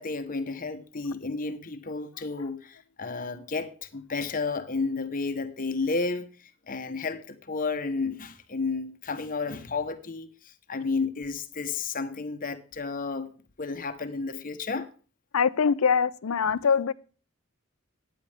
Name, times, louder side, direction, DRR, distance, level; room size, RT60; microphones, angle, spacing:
voice 1, 0.0-13.3 13.6-14.9 16.4-16.6, left 4 dB, 40° left, 1.0 m, -32 dB
voice 2, 15.3-16.9, left 6 dB, 75° left, 0.5 m, -23 dB
13.5 x 9.7 x 3.4 m
head